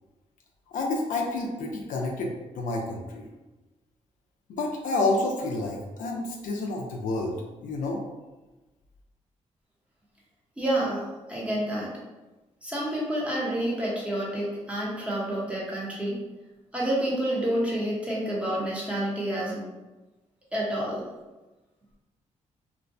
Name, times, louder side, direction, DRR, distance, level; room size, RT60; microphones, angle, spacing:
voice 1, 0.7-3.3 4.5-7.4 7.6-8.0, left 2 dB, 90° left, 0 dB, 0.5 m, -29 dB
voice 2, 10.6-11.9 12.6-16.2 16.7-19.6 20.5-21.0, right 1 dB, 10° right, -5 dB, 0.8 m, -29 dB
2.5 x 2.1 x 2.5 m, 1.1 s
cardioid pair, 100°, 13 cm